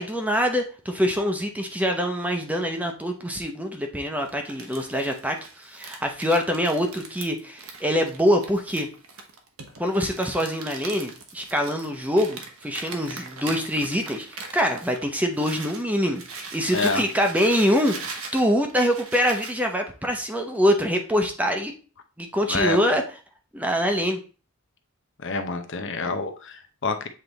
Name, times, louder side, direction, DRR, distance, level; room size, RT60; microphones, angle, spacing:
voice 1, 0.0-8.9 9.8-21.7 22.2-23.0 23.5-24.2, equal, 5° right, 4 dB, 0.7 m, -24 dB
Crumpling crinkling, 4.2-15.8 16.1-19.6, right 4 dB, 75° right, 1.1 m, -40 dB
voice 2, 16.7-17.0 22.5-22.8 25.2-27.1, left 3 dB, 60° left, 8 dB, 0.7 m, -27 dB
7.7 x 3.4 x 3.9 m, 0.36 s
head